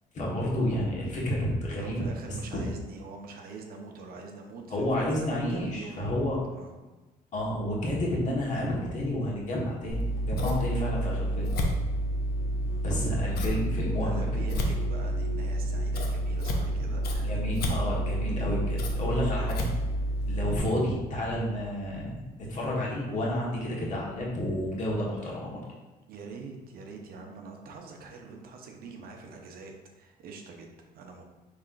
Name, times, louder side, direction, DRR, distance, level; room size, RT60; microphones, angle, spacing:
voice 1, 0.1-2.0 4.7-6.4 7.3-11.5 12.8-14.4 17.2-19.7 20.3-25.6, left 1 dB, 45° left, -4 dB, 1.4 m, -30 dB
voice 2, 1.7-6.7 12.6-13.0 14.0-17.4 26.1-31.2, right 4 dB, 60° right, 2 dB, 0.7 m, -44 dB
Scissors, 9.9-20.6, equal, 70° left, 0.7 m, -29 dB
5.5 x 3.2 x 2.5 m, 1.2 s
cardioid pair, 110°, 17 cm